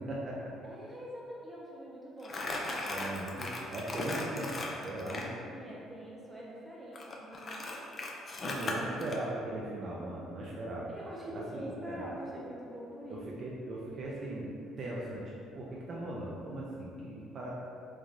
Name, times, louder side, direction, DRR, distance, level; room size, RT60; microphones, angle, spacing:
voice 1, 0.0-0.5 2.8-5.3 8.4-10.9 11.3-12.1 13.1-14.5 14.8-17.5, right 1 dB, 50° right, -5 dB, 0.4 m, -39 dB
voice 2, 0.6-2.6 5.4-7.9 8.3-9.1 10.9-13.5, right 1 dB, 15° right, -5 dB, 0.7 m, -45 dB
Crumpling crinkling, 2.2-5.3 6.9-9.2, left 2 dB, 40° left, 0.4 m, -37 dB
3.2 x 2.2 x 2.4 m, 2.5 s
supercardioid pair, 80°, 0 cm